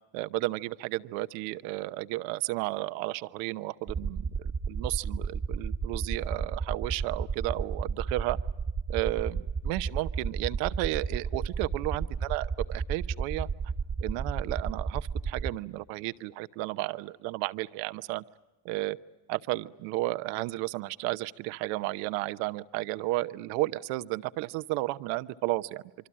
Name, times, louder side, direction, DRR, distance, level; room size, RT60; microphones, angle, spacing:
voice 1, 0.1-8.4 8.9-13.5 14.0-18.2 18.6-19.0 19.3-26.1, right 19 dB, 85° right, 15 dB, 0.9 m, -33 dB
sound 1, 3.9-15.5, right 5 dB, 25° right, 1.2 m, -32 dB
26.5 x 24.5 x 8.6 m, 0.99 s
supercardioid pair, 95°, 35 cm